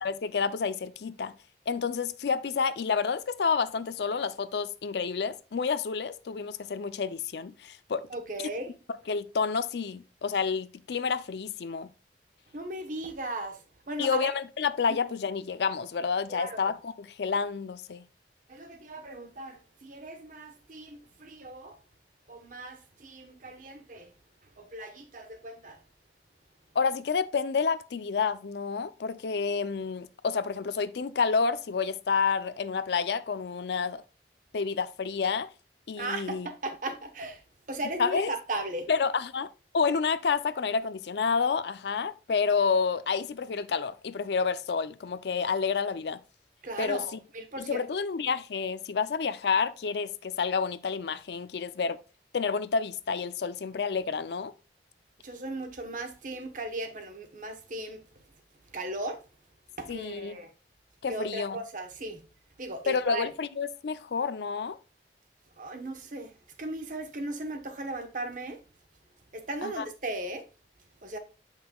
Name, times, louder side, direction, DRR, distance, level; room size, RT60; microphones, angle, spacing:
voice 1, 0.0-1.3 1.7-8.1 9.1-11.9 14.0-18.0 26.8-34.0 34.5-35.5 35.9-36.5 38.0-38.3 38.9-39.5 39.7-46.2 46.8-47.0 47.6-52.0 52.3-54.5 59.9-60.4 61.0-61.6 62.9-64.8 69.6-69.9, left 5 dB, 70° left, 0.4 m, -29 dB
voice 2, 8.1-8.7 12.5-13.6 13.9-14.3 14.9-15.0 16.3-16.6 18.5-21.8 22.3-24.1 24.6-25.8 36.0-37.4 37.7-38.9 46.6-47.8 55.2-58.0 58.7-59.2 59.8-60.5 61.1-62.2 62.6-63.3 65.6-66.3 66.6-68.6 69.3-70.4 71.0-71.2, right 2 dB, 45° right, 1.0 m, -37 dB
7.8 x 5.6 x 2.3 m
head